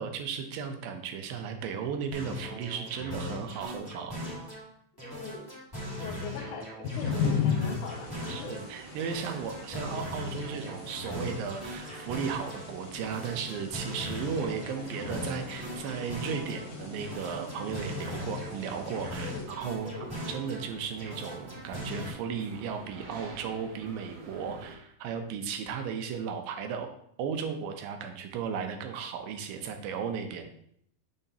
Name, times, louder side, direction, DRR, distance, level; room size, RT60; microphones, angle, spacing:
voice 1, 0.0-4.2 8.3-19.9 20.3-26.9 27.2-30.5, right 6 dB, 85° right, 6 dB, 2.5 m, -35 dB
sound 1, 2.1-4.7 5.0-8.7 9.0-12.6 13.0-16.6 17.0-20.7 21.0-22.1, left 1 dB, 15° right, 0.8 m, -40 dB
voice 2, 5.0-5.5 6.0-8.6 9.7-9.9 19.2-19.5 19.8-20.1, left 5 dB, 75° left, 2 dB, 2.0 m, -42 dB
sound 2, 6.8-19.4, left 6 dB, 50° left, 1.3 m, -37 dB
sound 3, 7.0-24.8, right 4 dB, 65° right, 1.6 m, -48 dB
7.0 x 5.6 x 2.8 m, 0.67 s
omnidirectional pair, 4.0 m